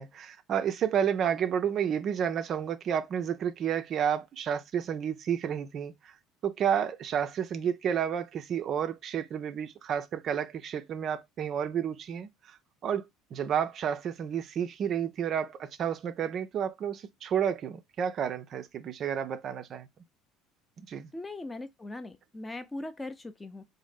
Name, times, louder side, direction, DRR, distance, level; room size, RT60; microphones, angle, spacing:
voice 1, 0.0-6.1 6.4-12.6 12.8-19.9 20.9-21.1, right 8 dB, 45° right, 0.4 m, -31 dB
voice 2, 21.1-23.6, left 2 dB, 15° left, 0.5 m, -40 dB
4.0 x 2.0 x 3.2 m
figure-of-eight pair, 60°, 0 cm